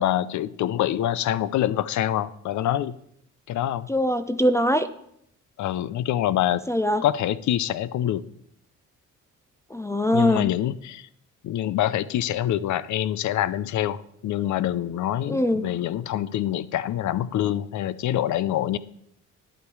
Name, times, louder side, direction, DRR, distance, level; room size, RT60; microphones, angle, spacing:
voice 1, 0.0-3.0 3.5-3.9 5.6-6.6 7.0-8.2 10.1-11.1 11.4-14.0 14.2-18.8, left 12 dB, 70° left, 18 dB, 0.6 m, -25 dB
voice 2, 3.9-4.9 6.7-7.0 9.7-10.5 15.3-15.6, left 1 dB, 10° left, 8 dB, 0.5 m, -22 dB
10.5 x 8.4 x 4.8 m, 0.73 s
cardioid pair, 90°, 30 cm